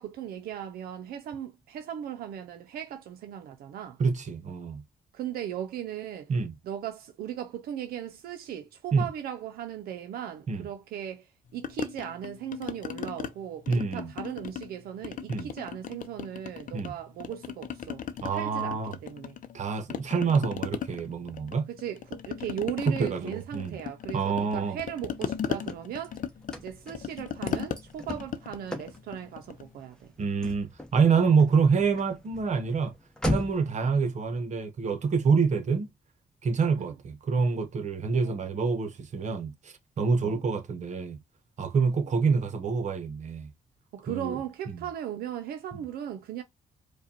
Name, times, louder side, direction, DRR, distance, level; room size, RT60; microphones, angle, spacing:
voice 1, 0.0-4.0 5.1-6.3 6.6-18.1 18.3-19.4 21.7-26.2 26.6-30.1 36.8-36.9 38.1-38.5 40.2-40.4 41.9-42.1 43.9-46.4, right 10 dB, 85° right, 0.5 m, -38 dB
voice 2, 4.0-4.8 6.3-6.5 8.9-9.1 10.5-10.7 13.7-14.1 15.3-15.5 16.7-16.9 18.2-19.0 19.5-21.7 22.9-23.8 24.1-24.8 30.2-32.9 33.2-35.9 36.4-41.2 41.6-43.5 44.1-44.4 44.7-44.8, right 5 dB, 50° right, 0.9 m, -27 dB
sound 1, 11.6-13.3 13.7-14.7 15.0-16.9 17.2-19.6 19.9-29.7, left 8 dB, 60° left, 0.6 m, -37 dB
Car / Slam, 25.1-33.8, left 1 dB, 5° left, 1.0 m, -38 dB
4.8 x 2.3 x 2.8 m
cardioid pair, 80°, 15 cm